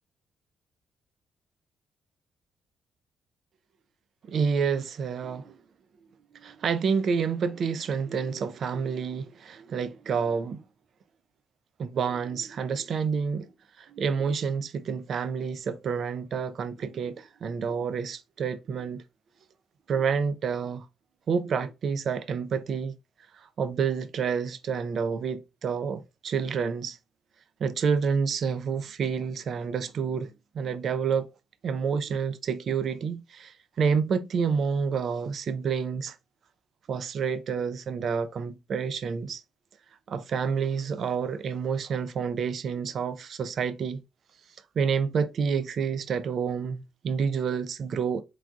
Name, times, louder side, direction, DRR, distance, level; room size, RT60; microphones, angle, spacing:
voice 1, 4.3-5.5 6.3-10.6 11.8-13.5 13.8-19.0 19.9-20.9 21.3-22.9 23.3-27.0 27.6-30.3 30.5-31.3 31.6-36.2 36.9-39.4 40.1-44.0 44.8-48.2, right 6 dB, 60° right, 0.5 m, -29 dB
4.7 x 3.7 x 2.3 m
cardioid pair, 90°, 0 cm